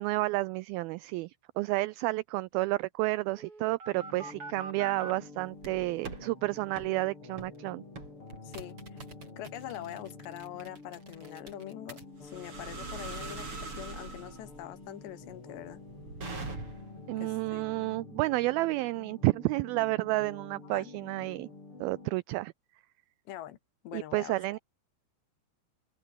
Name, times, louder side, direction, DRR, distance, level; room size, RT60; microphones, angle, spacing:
voice 1, 0.0-7.8 16.4-16.6 17.1-21.5 21.8-22.5 23.9-24.6, right 20 dB, 90° right, 2.1 m, -31 dB
sound 1, 3.3-5.1 5.6-6.2 6.8-6.9 7.4-7.6 8.0-17.0, right 3 dB, 30° right, 6.5 m, -43 dB
sound 2, 3.9-22.1, left 3 dB, 30° left, 6.4 m, -49 dB
voice 2, 8.4-9.0 9.4-15.8 17.2-17.7 20.6-20.9 23.3-23.6 23.8-24.6, left 12 dB, 85° left, 4.0 m, -44 dB
omnidirectional pair, 4.8 m